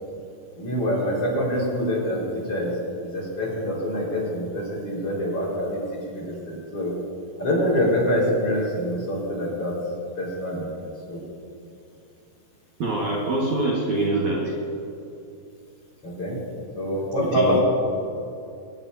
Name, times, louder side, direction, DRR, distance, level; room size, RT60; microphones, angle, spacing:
voice 1, 0.6-2.7 3.0-5.8 6.1-7.0 7.4-9.8 10.2-11.2 16.0-16.4 16.7-17.6, equal, 30° left, -5 dB, 5.5 m, -25 dB
voice 2, 12.8-14.6 17.2-17.6, right 2 dB, 55° right, -4 dB, 2.1 m, -24 dB
24.5 x 19.5 x 2.8 m, 2.6 s
omnidirectional pair, 6.0 m